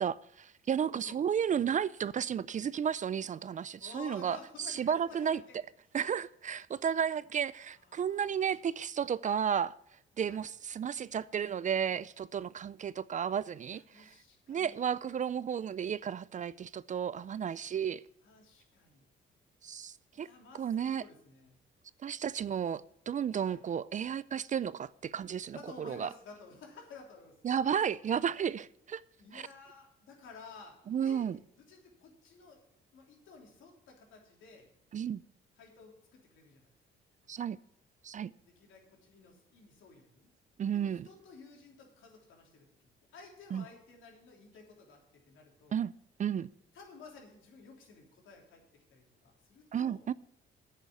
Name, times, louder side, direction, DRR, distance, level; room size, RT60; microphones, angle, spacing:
voice 1, 0.0-4.4 4.7-5.4 5.9-9.7 10.2-14.1 14.5-18.0 19.6-20.3 20.5-21.0 22.0-26.1 27.4-29.0 29.3-29.5 30.9-31.4 34.9-35.2 37.3-37.6 38.0-38.3 40.6-41.1 43.5-43.6 45.7-45.9 46.2-46.5 49.7-50.1, right 8 dB, 40° right, 0.4 m, -33 dB
voice 2, 0.9-1.2 3.8-5.6 7.6-8.7 10.3-10.4 13.7-14.9 18.2-19.0 20.1-21.5 23.4-23.6 25.5-27.3 29.2-32.6 32.9-34.7 35.6-36.7 38.4-40.3 40.7-42.7 43.1-45.8 46.7-48.6 48.9-50.0, left 4 dB, 80° left, 3.3 m, -53 dB
8.9 x 6.7 x 8.2 m
cardioid pair, 90°, 20 cm